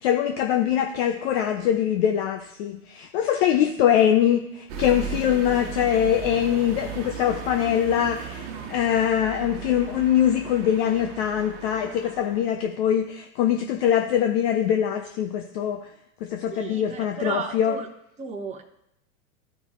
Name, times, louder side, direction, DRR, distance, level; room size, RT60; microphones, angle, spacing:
voice 1, 0.0-15.8 16.2-17.7, left 10 dB, 45° left, 5 dB, 0.7 m, -23 dB
sound 1, 4.7-12.5, right 7 dB, 45° right, 1.3 m, -37 dB
voice 2, 8.4-8.8 11.8-12.1 16.5-17.9 18.2-18.6, right 5 dB, 15° right, 2 dB, 1.0 m, -35 dB
12.5 x 5.2 x 3.1 m, 0.81 s
hypercardioid pair, 100°, 44 cm